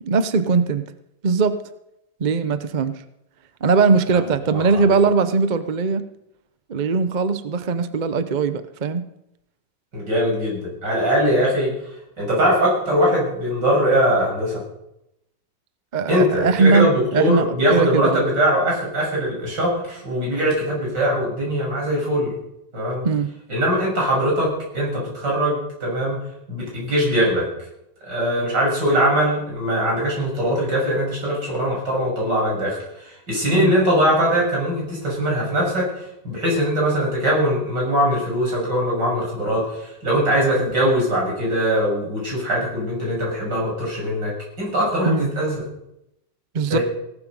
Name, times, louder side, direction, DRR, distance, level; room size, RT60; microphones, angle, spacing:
voice 1, 0.0-0.9 1.2-1.6 2.2-3.0 3.6-6.1 6.7-9.0 15.9-18.2 23.0-23.3 33.5-33.7 45.1-45.3 46.5-46.8, right 4 dB, 45° right, 12 dB, 0.6 m, -20 dB
voice 2, 4.5-4.9 9.9-11.7 12.2-14.6 16.1-22.3 22.7-23.1 23.5-26.2 26.5-27.5 28.1-35.9 36.2-45.6 46.7-46.8, equal, 70° right, -3 dB, 7.3 m, -21 dB
17.5 x 12.5 x 5.4 m, 0.83 s
omnidirectional pair, 2.0 m